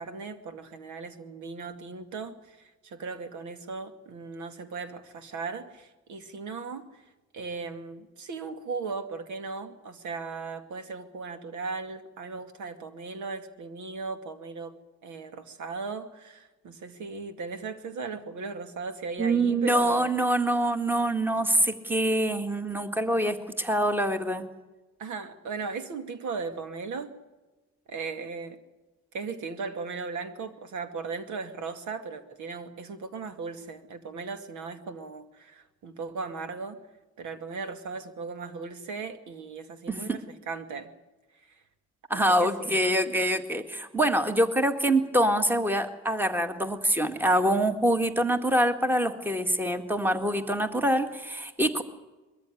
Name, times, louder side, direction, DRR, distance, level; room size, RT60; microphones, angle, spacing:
voice 1, 0.0-7.0 7.3-14.8 15.0-20.1 25.0-27.1 27.9-28.6 29.1-36.8 37.2-40.2 40.5-40.9 41.4-41.5 42.1-42.8, right 4 dB, 75° right, 8 dB, 2.4 m, -37 dB
voice 2, 19.2-24.5 39.9-40.2 42.1-51.8, right 1 dB, 5° right, 8 dB, 1.9 m, -25 dB
22.0 x 14.0 x 9.8 m, 1.1 s
cardioid pair, 90°, 30 cm